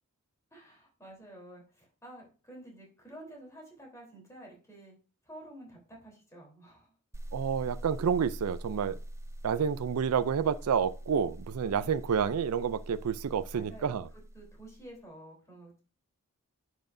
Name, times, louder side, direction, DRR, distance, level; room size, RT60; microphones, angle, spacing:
voice 1, 0.5-5.0 5.2-6.9 13.5-13.9 14.3-15.8, right 1 dB, 15° left, 3.5 m, -50 dB
sound 1, 7.1-14.9, right 1 dB, 15° right, 0.4 m, -44 dB
voice 2, 7.3-9.0 9.4-14.1, right 7 dB, 85° right, 0.4 m, -29 dB
10.0 x 6.2 x 2.6 m
head